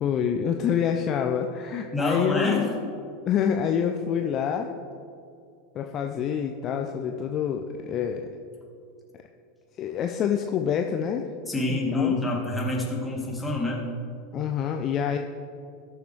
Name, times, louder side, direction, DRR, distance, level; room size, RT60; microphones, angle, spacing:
voice 1, 0.0-2.9 3.2-4.7 5.7-8.2 9.8-11.3 11.7-12.1 14.3-15.2, left 8 dB, 40° left, 4 dB, 0.7 m, -27 dB
voice 2, 1.9-2.7 11.5-13.8, left 2 dB, 10° left, -3 dB, 2.8 m, -27 dB
19.5 x 7.0 x 3.3 m, 2.5 s
figure-of-eight pair, 85°, 0 cm